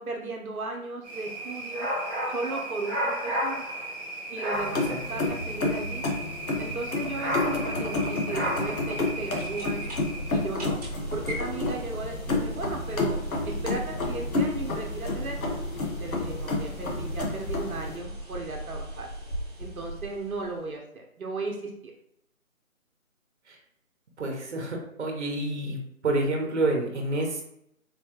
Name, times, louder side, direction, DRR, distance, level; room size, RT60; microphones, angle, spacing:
voice 1, 0.0-1.9 2.3-3.6 4.3-6.0 6.6-9.8 10.3-10.8 11.1-13.2 13.4-15.4 16.0-19.1 19.6-21.9, right 3 dB, 85° right, 1 dB, 0.8 m, -36 dB
sound 1, 1.0-10.5, right 1 dB, 5° left, 0.9 m, -33 dB
sound 2, 4.5-18.0, left 2 dB, 80° left, 1.0 m, -30 dB
sound 3, 9.0-20.7, right 1 dB, 25° right, 1.0 m, -38 dB
voice 2, 24.2-25.8 26.0-27.4, right 2 dB, 55° right, 1 dB, 0.9 m, -28 dB
4.2 x 2.3 x 2.8 m, 0.76 s
hypercardioid pair, 170°, 42 cm